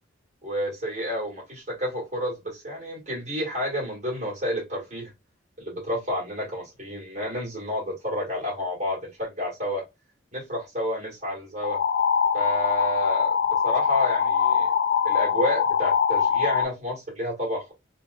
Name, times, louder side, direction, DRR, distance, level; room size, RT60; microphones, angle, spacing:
voice 1, 0.4-5.1 5.6-9.8 10.3-11.8 12.3-14.7 15.0-17.7, equal, 35° right, 1.6 m, -30 dB
sound 1, 11.6-16.7, left 7 dB, 55° left, 0.4 m, -23 dB
3.9 x 2.3 x 2.5 m
head